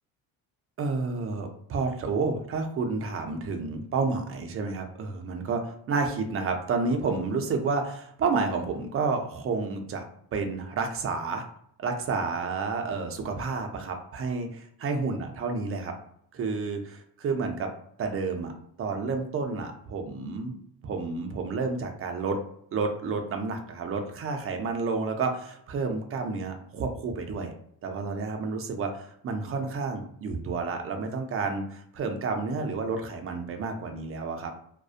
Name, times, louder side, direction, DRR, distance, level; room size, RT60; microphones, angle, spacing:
voice 1, 0.8-10.0 10.3-11.4 11.8-15.9 16.3-17.7 18.0-18.5 18.8-20.6 20.8-22.4 22.7-27.5 27.8-34.5, right 4 dB, 35° right, 5 dB, 0.4 m, -30 dB
2.5 x 2.1 x 2.4 m, 0.67 s
cardioid pair, 145°, 39 cm